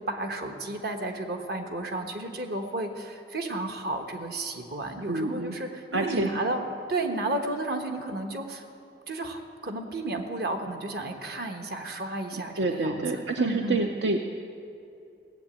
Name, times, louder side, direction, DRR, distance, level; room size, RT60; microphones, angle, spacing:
voice 1, 0.0-6.6 6.9-8.6 9.1-13.9, right 2 dB, 60° right, 5 dB, 1.2 m, -32 dB
voice 2, 5.1-5.5 5.9-6.3 12.5-14.3, right 3 dB, 80° right, 4 dB, 0.7 m, -27 dB
16.5 x 7.7 x 8.7 m, 2.5 s
head